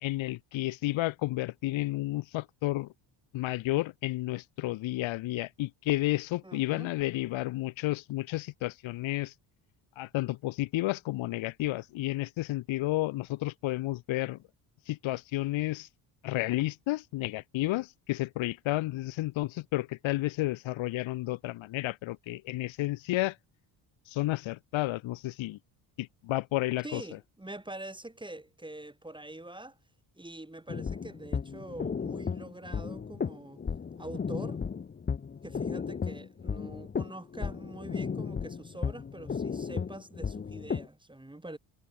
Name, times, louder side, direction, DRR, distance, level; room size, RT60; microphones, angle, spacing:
voice 1, 0.0-2.9 3.3-9.3 10.0-14.4 14.9-15.9 16.2-23.3 24.1-25.6 26.0-27.0, left 17 dB, 75° left, 1.0 m, -31 dB
voice 2, 6.4-6.9 26.8-29.8 30.2-33.6 34.0-34.6 35.4-41.6, right 1 dB, 10° right, 6.1 m, -44 dB
sound 1, 30.7-40.9, left 6 dB, 20° left, 0.7 m, -35 dB
cardioid pair, 85°, 48 cm